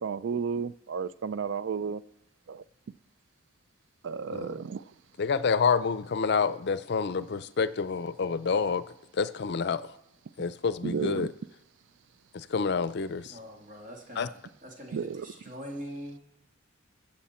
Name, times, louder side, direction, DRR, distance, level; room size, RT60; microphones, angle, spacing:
voice 1, 0.0-2.0 2.5-2.6 4.0-4.8 10.8-11.3 14.9-15.3, right 6 dB, 65° right, 0.4 m, -32 dB
voice 2, 5.2-8.8 9.1-9.8 10.4-11.3 12.3-13.3 14.2-14.3, left 5 dB, 55° left, 0.5 m, -28 dB
voice 3, 13.3-16.2, equal, 45° right, 2.1 m, -43 dB
21.5 x 7.6 x 4.3 m
head